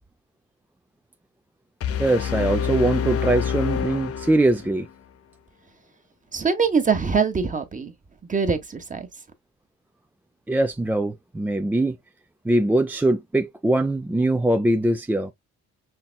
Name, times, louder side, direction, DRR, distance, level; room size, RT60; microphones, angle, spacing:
sound 1, 1.8-4.8, left 8 dB, 50° left, 0.6 m, -27 dB
voice 1, 2.0-4.9 10.5-12.0 12.4-15.3, right 1 dB, 5° right, 0.3 m, -22 dB
voice 2, 6.3-7.9 8.3-9.1, right 5 dB, 25° right, 1.1 m, -23 dB
5.7 x 3.1 x 2.2 m
cardioid pair, 90°, 30 cm